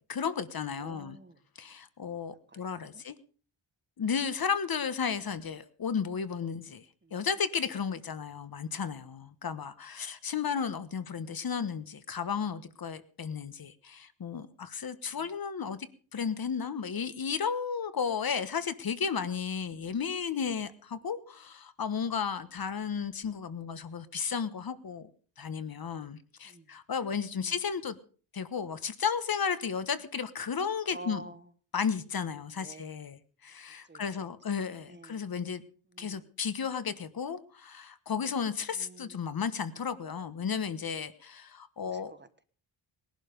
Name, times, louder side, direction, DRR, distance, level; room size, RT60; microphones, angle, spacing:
voice 1, 0.1-1.2 1.6-3.1 4.0-6.8 7.1-25.1 25.4-28.0 28.3-31.2 31.7-35.6 36.0-42.1, left 6 dB, 45° left, 13 dB, 1.3 m, -34 dB
voice 2, 0.7-1.4 2.5-3.0 7.0-7.3 13.6-13.7 15.1-15.3 26.4-26.7 27.4-27.5 30.8-31.5 32.6-32.9 33.8-34.3 34.8-35.2 35.9-36.3 38.7-39.4 41.8-42.4, right 2 dB, 20° right, 10 dB, 1.3 m, -50 dB
20.5 x 11.5 x 5.2 m, 0.41 s
wide cardioid pair, 125°, 49 cm